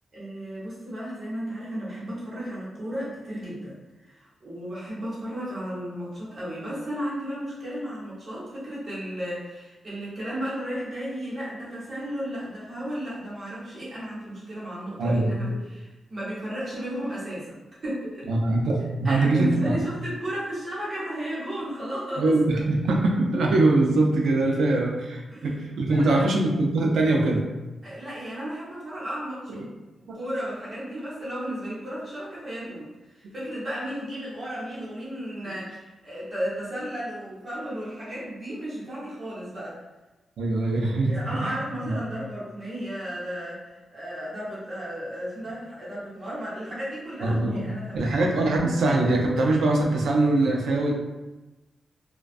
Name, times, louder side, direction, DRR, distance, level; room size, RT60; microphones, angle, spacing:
voice 1, 0.1-17.6 17.8-18.3 19.0-22.3 25.3-25.5 25.9-26.3 27.8-29.7 30.1-39.8 40.7-48.1, equal, 40° right, -9 dB, 1.0 m, -34 dB
voice 2, 15.0-15.6 18.3-19.8 22.2-27.4 29.5-29.6 30.1-30.2 40.4-41.5 41.8-42.0 47.2-50.9, right 2 dB, 75° right, 0 dB, 0.4 m, -23 dB
2.3 x 2.2 x 2.4 m, 1.1 s
wide cardioid pair, 145°, 0 cm